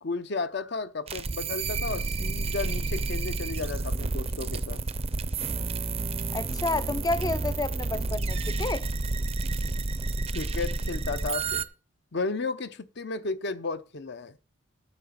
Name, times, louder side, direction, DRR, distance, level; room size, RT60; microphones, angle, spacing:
voice 1, 0.0-4.8 10.3-11.6 12.1-14.4, left 3 dB, 55° left, 0.7 m, -33 dB
sound 1, 1.1-11.6, right 3 dB, 30° right, 0.5 m, -30 dB
voice 2, 6.3-8.9, left 2 dB, 20° left, 0.4 m, -30 dB
8.9 x 6.9 x 5.8 m
head